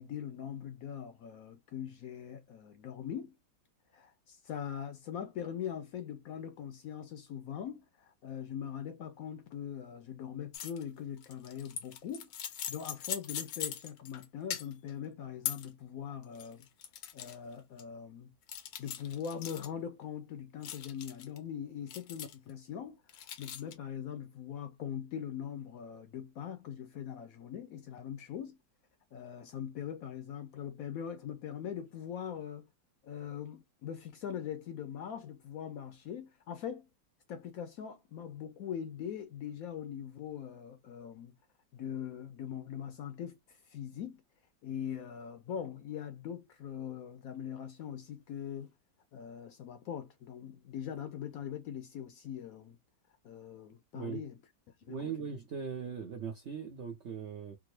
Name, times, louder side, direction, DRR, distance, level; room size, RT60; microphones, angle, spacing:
voice 1, 0.0-3.4 3.9-12.3 12.7-16.7 17.1-18.3 18.8-28.6 29.1-32.7 33.0-36.9 37.3-41.3 41.7-44.2 44.6-48.7 49.1-52.8 53.2-54.4 54.9-55.1, left 8 dB, 70° left, 0.8 m, -42 dB
sound 1, 10.5-10.8 11.2-14.3 14.5-14.9 15.5-15.7 16.2-17.4 17.8-17.9 18.5-19.7 20.6-21.4 21.9-22.5 23.1-23.8, left 10 dB, 85° left, 1.3 m, -41 dB
voice 2, 54.9-57.6, right 6 dB, 70° right, 0.6 m, -39 dB
3.6 x 2.0 x 3.1 m
omnidirectional pair, 1.8 m